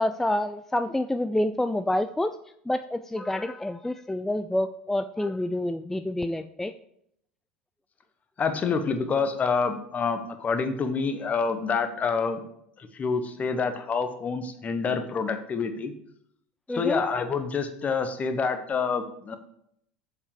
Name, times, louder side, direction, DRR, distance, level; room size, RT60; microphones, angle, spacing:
voice 1, 0.0-2.4 2.7-6.7 16.7-17.0, left 1 dB, 5° left, 10 dB, 0.3 m, -28 dB
voice 2, 8.4-12.4 12.8-15.9 16.7-19.4, left 5 dB, 25° left, 9 dB, 1.0 m, -27 dB
7.2 x 7.0 x 4.9 m, 0.72 s
figure-of-eight pair, 75°, 6 cm